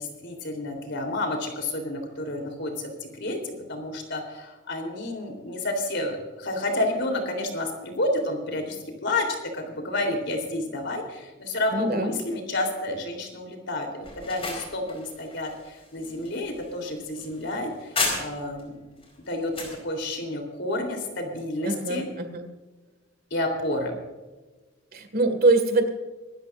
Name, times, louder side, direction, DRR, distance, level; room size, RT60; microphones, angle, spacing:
voice 1, 0.0-9.3 9.5-18.8 19.3-22.1 23.3-23.9, left 1 dB, 60° left, 4 dB, 3.7 m, -30 dB
voice 2, 11.7-12.1 21.6-22.5 24.9-25.9, right 2 dB, 50° right, 7 dB, 2.1 m, -23 dB
sound 1, 14.0-18.6 19.0-19.8, left 3 dB, 30° left, 4.7 m, -33 dB
25.5 x 13.0 x 2.6 m, 1.2 s
head